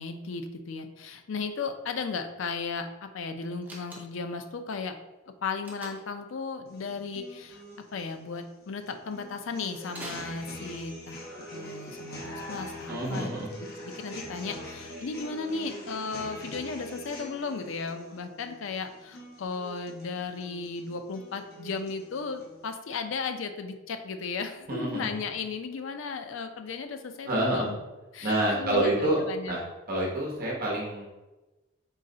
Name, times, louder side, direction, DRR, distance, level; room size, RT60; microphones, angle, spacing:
voice 1, 0.0-4.9 5.3-7.6 7.9-13.3 13.8-27.8 28.1-29.6, left 4 dB, 65° left, 7 dB, 0.4 m, -35 dB
Slam, 3.6-4.4 5.6-6.2 9.9-11.0, right 1 dB, 10° right, 0.6 m, -44 dB
sound 1, 6.7-22.7, equal, 50° left, 0.9 m, -44 dB
voice 2, 12.9-13.5 24.7-25.1 27.3-27.7 28.2-29.6 29.9-31.1, right 1 dB, 45° right, -3 dB, 1.0 m, -27 dB
4.0 x 3.1 x 3.8 m, 1.1 s
head